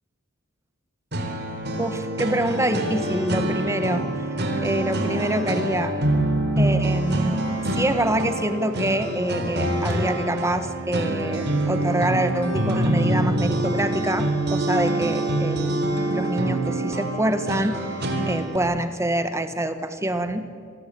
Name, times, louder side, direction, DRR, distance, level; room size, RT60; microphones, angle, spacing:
sound 1, 1.1-18.6, right 1 dB, 55° right, 3.7 m, -25 dB
voice 1, 1.8-4.0 4.6-5.9 6.6-7.4 7.7-15.8 16.1-17.8 18.3-20.5, right 1 dB, 15° right, 9 dB, 1.6 m, -25 dB
27.0 x 20.0 x 8.8 m, 2.2 s
head